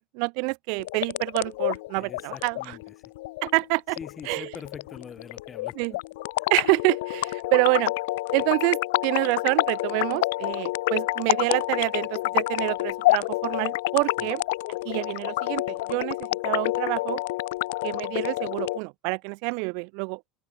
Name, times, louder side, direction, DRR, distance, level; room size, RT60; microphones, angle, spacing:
voice 1, 0.0-2.8 3.4-4.0 4.3-4.5 5.8-5.9 6.5-7.9 8.3-14.4 14.9-16.2 16.4-17.2 17.8-20.2, right 39 dB, 60° right, 2.0 m, -27 dB
sound 1, 0.8-18.8, left 20 dB, 90° left, 1.0 m, -28 dB
voice 2, 1.9-2.8 4.0-6.0 14.2-14.3, left 7 dB, 20° left, 6.1 m, -43 dB
cardioid pair, 155°, 0 cm